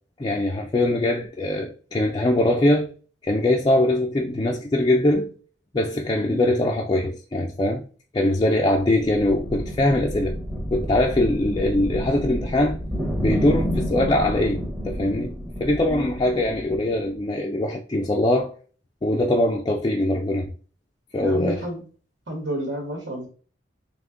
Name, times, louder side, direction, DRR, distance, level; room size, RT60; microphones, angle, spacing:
voice 1, 0.2-2.9 3.2-5.3 5.7-7.8 8.1-10.4 10.7-12.8 13.2-15.4 15.6-18.5 19.0-20.5 21.1-21.7, left 1 dB, 25° left, 0.4 m, -22 dB
sound 1, 9.0-17.2, equal, 10° right, 0.8 m, -30 dB
voice 2, 21.2-21.8 22.3-23.3, equal, 80° right, 1.3 m, -30 dB
3.5 x 3.0 x 3.7 m
head